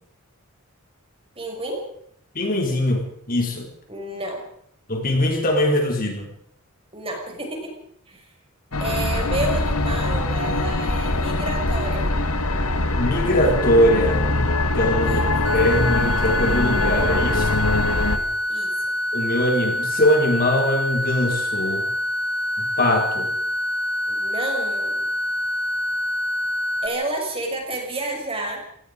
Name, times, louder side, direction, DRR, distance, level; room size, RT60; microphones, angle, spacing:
voice 1, 1.4-1.8 3.9-4.4 6.9-7.7 8.1-8.2 8.8-12.1 15.0-15.3 18.5-18.7 24.1-25.1 26.8-28.6, right 2 dB, 25° right, 1 dB, 6.3 m, -30 dB
voice 2, 2.3-3.7 4.9-6.3 12.9-14.4 14.7-15.2 15.5-17.7 19.1-21.9 22.6-23.3, left 1 dB, 40° left, 2 dB, 4.2 m, -21 dB
sound 1, 8.7-18.2, left 2 dB, 80° left, 2.1 m, -22 dB
sound 2, 15.4-26.9, left 1 dB, 90° right, 2.6 m, -26 dB
27.0 x 18.5 x 5.2 m, 0.68 s
head